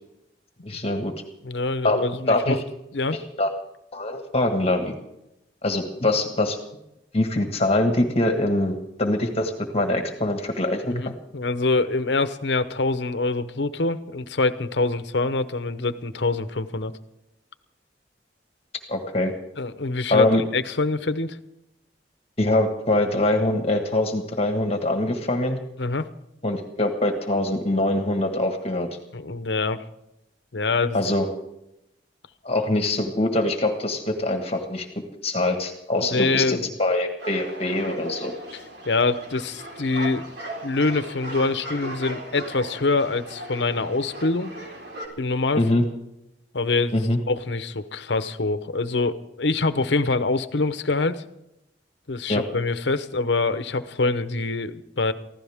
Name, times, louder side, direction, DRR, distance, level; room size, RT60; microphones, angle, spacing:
voice 1, 0.6-1.1 1.8-2.6 3.4-3.5 3.9-4.9 5.6-6.6 7.1-10.9 18.9-19.3 20.1-20.4 22.4-25.6 26.4-28.9 30.9-31.3 32.4-34.9 35.2-38.3 45.6-45.8 46.9-47.2 52.3-52.5, left 1 dB, 35° left, 5 dB, 1.6 m, -23 dB
voice 2, 1.4-2.6 2.9-3.2 10.8-16.9 19.6-20.3 20.5-21.4 25.8-26.1 29.1-29.8 30.5-31.0 36.0-36.7 38.8-40.3 40.6-44.5 45.2-45.7 46.5-46.9 47.3-51.2 52.1-55.1, left 3 dB, 80° left, 12 dB, 0.9 m, -25 dB
sound 1, 37.2-45.1, right 1 dB, 70° right, 4.2 m, -38 dB
23.5 x 15.5 x 3.6 m, 0.87 s
head